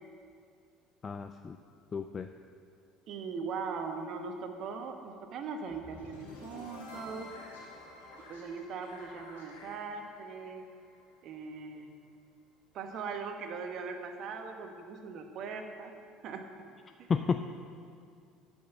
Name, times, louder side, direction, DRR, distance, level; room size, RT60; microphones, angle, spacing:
voice 1, 1.0-1.6 1.9-2.3 17.1-17.5, left 5 dB, 35° left, 7 dB, 0.4 m, -32 dB
voice 2, 3.1-7.3 8.3-10.6 11.2-11.9 12.7-15.9 16.2-16.4 17.0-17.1, right 5 dB, 55° right, 5 dB, 1.2 m, -40 dB
sound 1, 5.7-11.7, left 2 dB, 85° left, 2.6 m, -50 dB
12.0 x 5.4 x 7.1 m, 2.4 s
hypercardioid pair, 65°, 0 cm